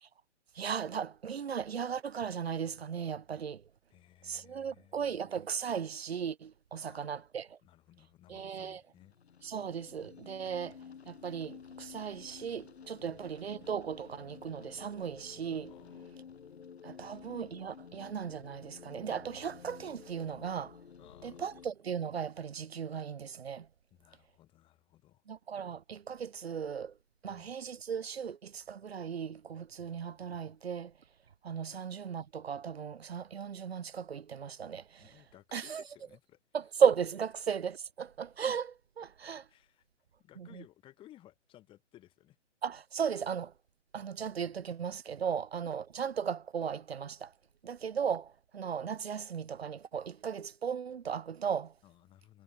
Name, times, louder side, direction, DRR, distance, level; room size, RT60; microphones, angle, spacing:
voice 1, 0.5-3.6 4.2-7.5 8.3-8.8 9.4-10.8 11.1-15.7 16.8-20.8 21.2-23.7 25.3-26.9 27.2-30.9 31.4-35.2 35.5-35.8 36.5-39.5 40.4-40.6 42.6-43.5 43.9-47.3 47.6-51.7, right 7 dB, 55° right, 5.0 m, -36 dB
voice 2, 3.9-5.2 6.8-7.2 7.6-9.2 13.0-13.2 15.7-16.1 17.0-17.2 21.0-21.5 23.9-25.2 27.3-27.5 29.8-29.9 35.0-36.4 39.5-39.8 40.2-42.4 51.8-52.4, left 14 dB, 15° left, 7.1 m, -59 dB
sound 1, 8.9-21.7, left 7 dB, 60° left, 4.8 m, -52 dB
hypercardioid pair, 160°, 36 cm